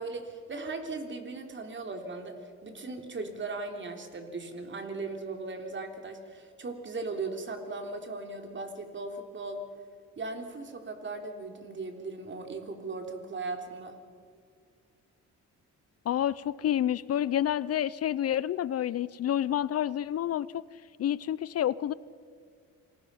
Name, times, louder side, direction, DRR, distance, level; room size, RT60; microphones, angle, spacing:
voice 1, 0.0-9.7 10.2-14.0, right 3 dB, 40° right, 5 dB, 3.6 m, -38 dB
voice 2, 16.1-20.6 21.0-21.9, left 11 dB, 55° left, 20 dB, 0.6 m, -29 dB
27.5 x 20.0 x 5.7 m, 2.3 s
cardioid pair, 90°, 30 cm